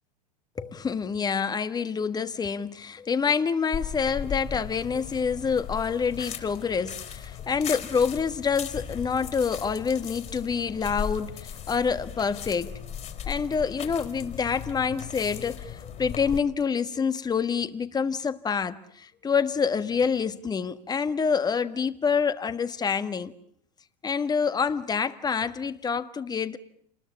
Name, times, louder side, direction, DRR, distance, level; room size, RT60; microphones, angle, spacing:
voice 1, 0.6-12.8 13.3-23.3 24.0-26.6, left 6 dB, 20° left, 1.5 m, -27 dB
sound 1, 3.7-16.4, left 8 dB, 35° left, 3.7 m, -37 dB
28.5 x 20.5 x 8.7 m
hypercardioid pair, 100°, 21 cm